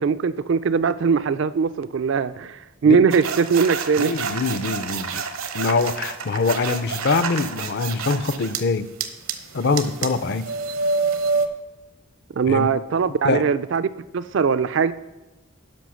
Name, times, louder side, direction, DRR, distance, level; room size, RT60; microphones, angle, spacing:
voice 1, 0.0-4.1 12.4-14.9, right 5 dB, 60° right, 0.4 m, -21 dB
sound 1, 3.1-8.6 9.0-11.5, right 4 dB, 75° right, 0.9 m, -28 dB
voice 2, 4.0-5.2 5.5-8.9 9.5-10.5 12.5-12.7 13.2-13.4, left 4 dB, 55° left, 0.5 m, -23 dB
10.5 x 5.9 x 6.3 m
head